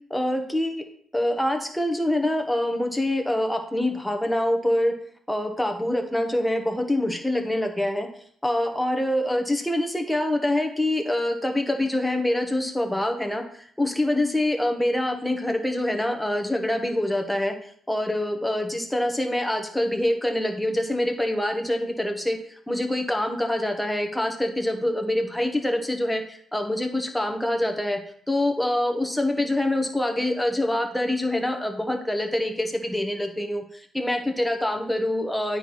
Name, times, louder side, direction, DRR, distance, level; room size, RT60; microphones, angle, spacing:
voice 1, 0.1-0.8 1.1-5.0 5.3-8.1 8.4-13.4 13.8-17.5 17.9-28.0 28.3-35.6, left 1 dB, 5° left, 4 dB, 1.2 m, -25 dB
8.8 x 4.9 x 4.2 m, 0.62 s
cardioid pair, 90°, 0 cm